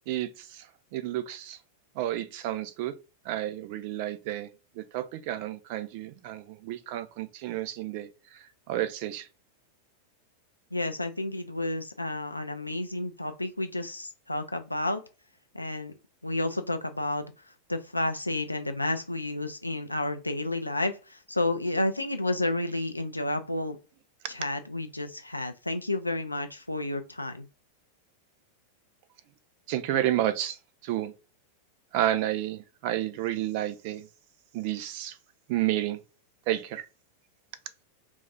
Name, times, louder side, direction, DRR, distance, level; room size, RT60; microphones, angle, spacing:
voice 1, 0.1-0.7 0.9-1.6 2.0-2.9 3.2-4.5 4.8-9.3 29.7-30.6 30.8-31.1 31.9-34.1 34.5-35.2 35.5-36.0 36.5-36.9, right 13 dB, 45° right, 0.4 m, -31 dB
voice 2, 10.7-15.0 15.5-15.9 16.2-17.3 17.7-23.8 24.3-27.5, left 2 dB, 85° left, 0.3 m, -31 dB
3.1 x 2.3 x 2.6 m
figure-of-eight pair, 90°, 0 cm